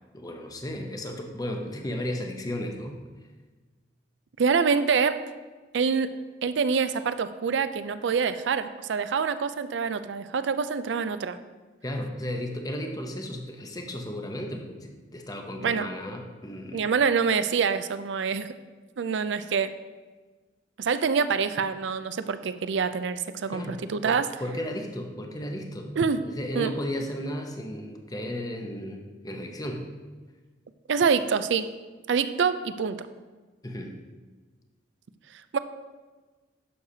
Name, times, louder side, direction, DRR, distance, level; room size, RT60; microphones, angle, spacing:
voice 1, 0.1-3.0 11.8-16.9 23.5-23.8 24.0-25.9 26.2-29.9 33.6-34.0, left 1 dB, 20° left, 3 dB, 0.8 m, -34 dB
voice 2, 4.4-5.2 5.7-11.4 15.6-15.9 16.7-18.5 19.0-19.7 20.8-24.3 26.0-26.2 26.5-26.7 30.9-31.7 32.1-33.0 35.5-35.6, right 5 dB, 70° right, 12 dB, 0.4 m, -26 dB
11.0 x 6.6 x 2.8 m, 1.3 s
head